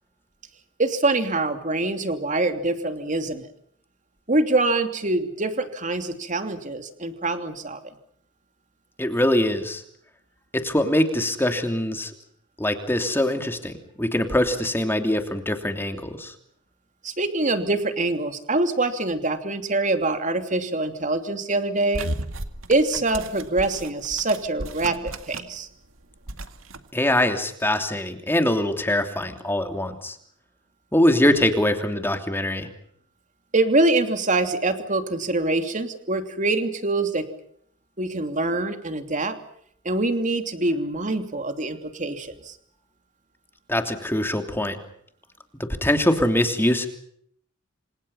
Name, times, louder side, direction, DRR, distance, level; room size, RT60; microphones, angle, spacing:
voice 1, 0.8-3.5 4.3-7.8 17.0-22.1 22.7-25.7 33.5-37.3 38.0-39.4 39.8-42.5, right 2 dB, 40° right, 7 dB, 3.0 m, -24 dB
voice 2, 9.0-9.8 10.5-12.1 12.6-16.3 26.9-30.2 30.9-32.7 43.7-44.8 45.6-46.9, left 1 dB, 10° left, 6 dB, 3.0 m, -23 dB
sound 1, 21.9-25.6 25.9-26.8, right 2 dB, 85° right, 2.1 m, -35 dB
27.5 x 26.5 x 5.7 m, 0.66 s
head